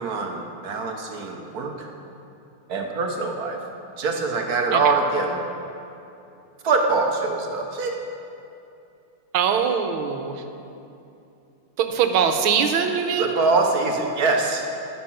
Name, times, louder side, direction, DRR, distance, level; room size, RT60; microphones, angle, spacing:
voice 1, 0.0-1.9 2.7-3.6 4.0-5.4 6.6-8.0 13.2-14.6, right 3 dB, 55° right, 2 dB, 1.2 m, -23 dB
voice 2, 9.3-10.4 11.8-13.3, right 7 dB, 85° right, 6 dB, 1.6 m, -22 dB
10.5 x 10.0 x 5.7 m, 2.7 s
omnidirectional pair, 2.2 m